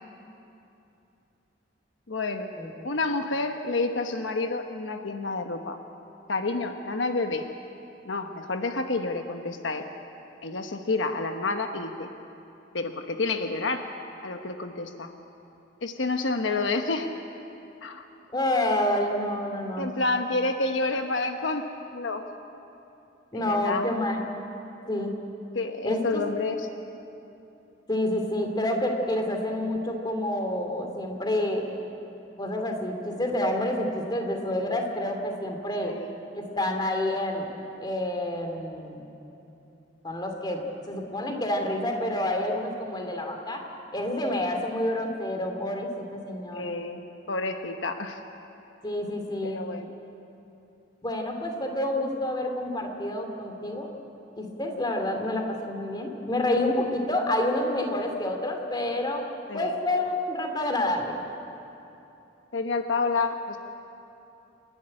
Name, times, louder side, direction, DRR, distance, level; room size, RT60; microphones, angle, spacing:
voice 1, 2.1-2.5 2.8-5.8 6.3-7.4 8.0-9.9 10.4-12.1 12.7-13.8 14.2-15.1 15.8-17.1 17.8-18.1 19.8-21.6 21.9-22.2 23.3-23.9 25.5-26.7 35.8-36.1 46.5-47.0 47.3-48.2 49.4-49.9 59.5-59.8 62.5-63.6, left 3 dB, 80° left, 6 dB, 1.1 m, -29 dB
voice 2, 18.3-19.9 23.3-24.2 24.9-25.1 25.8-26.2 27.9-31.6 32.4-35.9 36.3-37.5 37.8-39.0 40.0-43.6 43.9-46.8 48.8-49.6 51.0-53.9 54.4-59.2 59.5-61.2, left 1 dB, 25° left, 3 dB, 2.5 m, -28 dB
28.0 x 11.5 x 9.8 m, 2.9 s
head